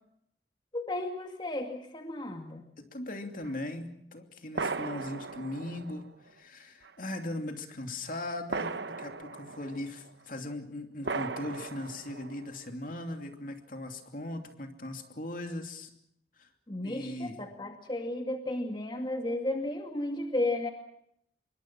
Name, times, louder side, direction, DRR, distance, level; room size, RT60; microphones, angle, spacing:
voice 1, 0.7-2.6 16.7-20.7, left 1 dB, 25° left, 4 dB, 2.3 m, -33 dB
voice 2, 2.8-15.9 16.4-16.5 16.8-17.4, left 1 dB, 50° left, 5 dB, 2.8 m, -39 dB
sound 1, 3.4-3.5 4.5-6.3 6.8-6.9 8.5-10.1 11.0-12.6, right 4 dB, 80° right, 1.1 m, -37 dB
26.5 x 23.5 x 6.0 m, 0.72 s
head